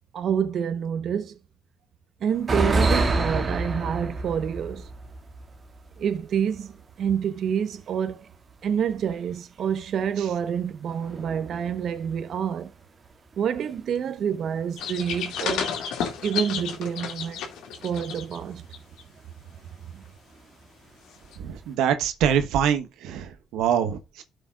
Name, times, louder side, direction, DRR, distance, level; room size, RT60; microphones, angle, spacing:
voice 1, 0.1-1.4 2.2-4.9 6.0-8.3 8.6-12.7 13.4-15.7 16.2-17.4 17.8-18.6 19.9-20.0, right 8 dB, 65° right, 1.1 m, -28 dB
sound 1, 2.3-6.9 7.2-7.3 8.5-8.7 10.9-12.1 13.1-13.3 13.8-13.9 14.3-14.4 16.3-16.4 17.1-17.2 19.5-19.8 20.3-20.7 21.2-21.7, right 2 dB, 40° right, 2.2 m, -28 dB
sound 2, 14.8-18.4 18.7-19.0 21.3-21.4, left 7 dB, 90° left, 2.4 m, -31 dB
voice 2, 21.4-24.2, right 9 dB, 90° right, 1.2 m, -24 dB
13.0 x 7.0 x 2.5 m
cardioid pair, 85°, 0 cm